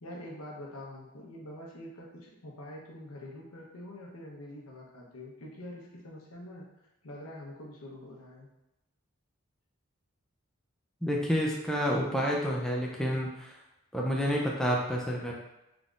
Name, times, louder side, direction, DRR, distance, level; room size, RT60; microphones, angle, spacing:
voice 1, 0.0-6.7 7.0-8.5, left 1 dB, 85° left, -2 dB, 0.9 m, -45 dB
voice 2, 11.0-13.6 13.9-15.3, equal, ahead, -3 dB, 0.4 m, -29 dB
3.8 x 3.8 x 2.4 m, 0.96 s
head